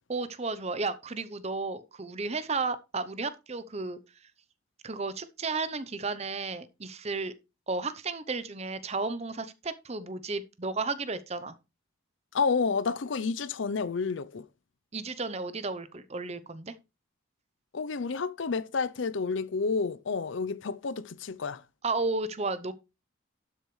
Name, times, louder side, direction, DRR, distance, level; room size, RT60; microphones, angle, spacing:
voice 1, 0.1-4.0 4.8-7.3 7.7-11.6 14.9-16.7 21.8-22.7, right 3 dB, 30° right, 0.7 m, -33 dB
voice 2, 12.3-14.5 17.7-21.6, left 4 dB, 70° left, 0.6 m, -30 dB
12.0 x 7.9 x 3.2 m
head